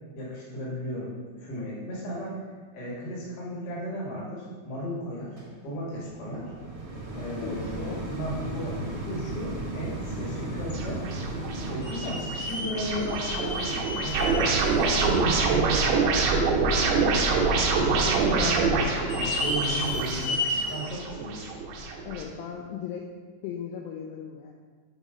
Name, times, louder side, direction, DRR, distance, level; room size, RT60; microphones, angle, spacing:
voice 1, 0.1-2.4 2.7-5.3 5.6-6.5 7.1-11.0 11.7-17.3 17.7-21.5, equal, 45° left, -6 dB, 1.3 m, -35 dB
sound 1, 5.4-16.6 17.2-17.3, right 2 dB, 60° right, 1.4 m, -37 dB
voice 2, 7.4-8.0 22.0-23.1 23.4-24.5, left 8 dB, 80° left, 0 dB, 2.1 m, -37 dB
sound 2, 10.7-22.2, right 4 dB, 75° right, 2.3 m, -26 dB
sound 3, 11.1-11.2 11.8-15.2 15.7-15.8 16.4-16.5 17.4-17.9 18.1-18.2 18.9-20.9 21.4-21.5 22.4-22.5, left 2 dB, 65° left, 1.7 m, -33 dB
6.2 x 4.0 x 4.9 m, 1.5 s
omnidirectional pair, 4.7 m